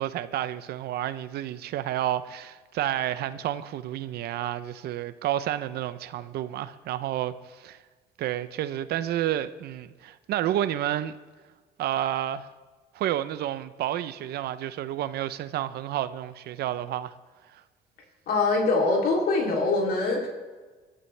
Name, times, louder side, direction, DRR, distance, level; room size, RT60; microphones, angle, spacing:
voice 1, 0.0-7.8 8.2-11.2 11.8-12.5 12.9-17.1 17.5-17.6, right 12 dB, 70° right, 0.6 m, -30 dB
voice 2, 18.3-20.3, left 3 dB, 65° left, 3.0 m, -23 dB
18.5 x 12.5 x 3.3 m
cardioid pair, 110°, 17 cm